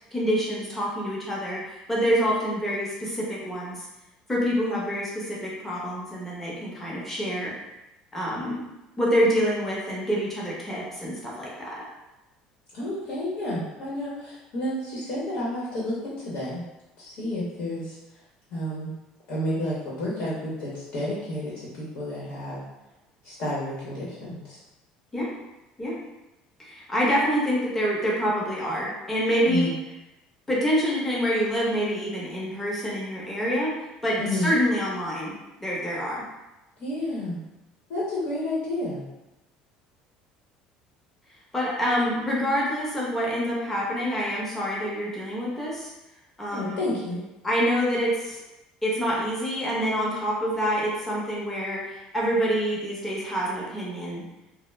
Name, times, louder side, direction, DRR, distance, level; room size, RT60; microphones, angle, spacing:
voice 1, 0.1-3.9 4.3-7.5 8.1-8.6 9.0-11.8 25.1-25.3 25.8-26.0 26.6-29.7 30.5-33.8 34.0-35.3 35.6-36.2 41.5-45.9 46.4-46.8 47.4-48.4 48.8-54.2, equal, 10° left, -5 dB, 0.7 m, -26 dB
voice 2, 12.7-16.7 17.0-18.0 18.5-18.9 19.3-22.6 23.2-24.6 29.5-29.7 34.2-34.5 36.8-37.4 37.9-39.0 46.5-47.2, left 1 dB, 60° left, -7 dB, 0.9 m, -30 dB
2.3 x 2.0 x 3.1 m, 0.97 s
cardioid pair, 140°, 2 cm